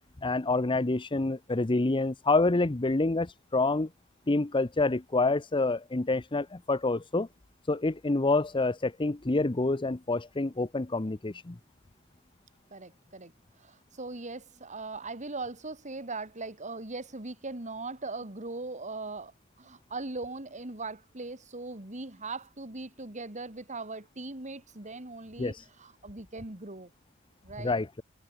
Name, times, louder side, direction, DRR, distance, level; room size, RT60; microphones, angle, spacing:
voice 1, 0.2-3.9 4.3-7.3 7.7-11.6 25.4-25.6 27.6-28.0, left 2 dB, 25° left, 0.7 m, -27 dB
voice 2, 12.7-13.3 13.6-19.3 19.6-26.9 27.4-27.7, right 3 dB, 35° right, 2.9 m, -40 dB
head